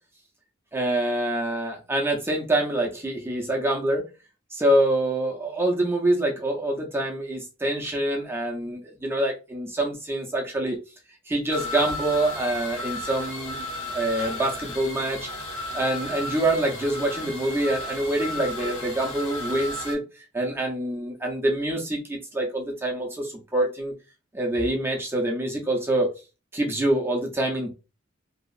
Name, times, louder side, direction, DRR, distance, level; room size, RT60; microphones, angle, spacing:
voice 1, 0.7-4.0 4.5-10.8 11.3-13.7 13.9-15.3 15.7-20.0 20.3-23.9 24.3-26.1 26.5-27.7, right 1 dB, 10° right, 0.5 m, -25 dB
sound 1, 11.5-19.9, left 1 dB, 85° left, 1.3 m, -34 dB
2.7 x 2.4 x 2.4 m
head